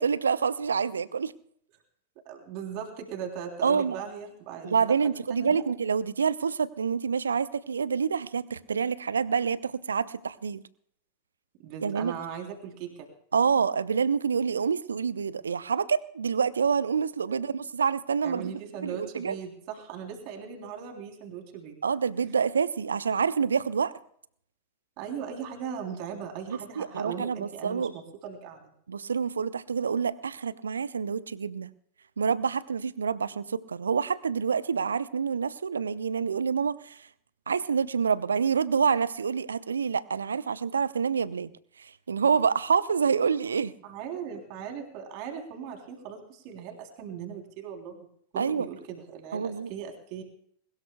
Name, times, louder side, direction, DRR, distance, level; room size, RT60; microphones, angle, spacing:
voice 1, 0.0-1.3 3.6-3.9 4.6-10.6 11.8-12.1 13.3-19.4 21.8-23.9 26.5-27.9 28.9-31.7 32.2-37.1 37.5-41.5 41.8-43.7 48.4-48.7 49.3-49.7, right 6 dB, 70° right, 18 dB, 0.7 m, -27 dB
voice 2, 2.2-4.7 5.3-5.5 11.6-13.1 17.3-17.5 18.2-21.8 25.0-28.6 43.8-48.1 48.3-50.2, right 7 dB, 45° right, 3 dB, 3.4 m, -39 dB
21.5 x 19.5 x 2.3 m, 0.64 s
figure-of-eight pair, 90°, 0 cm